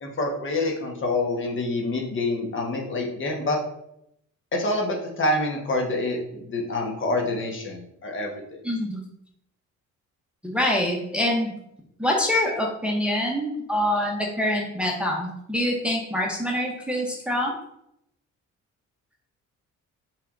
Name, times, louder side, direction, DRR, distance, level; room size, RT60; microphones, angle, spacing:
voice 1, 0.0-3.6 4.5-8.6, left 2 dB, 40° left, 0 dB, 1.2 m, -27 dB
voice 2, 8.6-9.0 10.4-11.6 12.0-17.5, left 1 dB, 5° right, -1 dB, 0.8 m, -25 dB
5.6 x 3.5 x 2.6 m, 0.76 s
cardioid pair, 90°, 30 cm